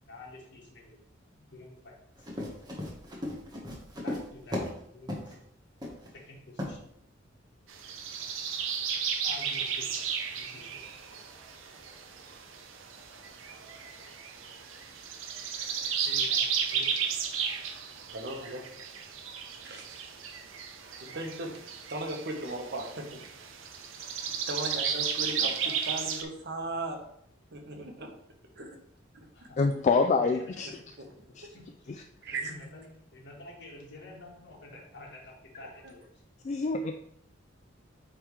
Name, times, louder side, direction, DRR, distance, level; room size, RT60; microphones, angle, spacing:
voice 1, 0.0-1.0 1.5-2.3 3.9-5.4 6.1-6.8 9.2-11.2 16.0-17.0 17.6-17.7 21.1-21.2 25.6-25.8 29.3-29.6 30.0-31.0 31.5-36.2, left 2 dB, 65° left, -1 dB, 1.6 m, -49 dB
Run, 2.2-4.8 5.1-5.3 5.8-6.1 6.6-6.8, left 1 dB, 20° right, 1.3 m, -36 dB
sound 1, 7.7-26.2, right 7 dB, 85° right, 0.7 m, -34 dB
voice 2, 18.1-18.6 19.6-20.2 21.0-21.6 21.9-23.2 24.5-25.5 25.9-27.0 27.5-28.1 28.6-28.8 29.6-29.8 31.0-31.1 32.2-32.5, right 2 dB, 60° right, 3 dB, 1.1 m, -37 dB
voice 3, 29.6-30.7 31.4-31.5 36.4-37.0, left 4 dB, 35° left, 5 dB, 0.3 m, -26 dB
8.7 x 3.4 x 3.2 m, 0.72 s
head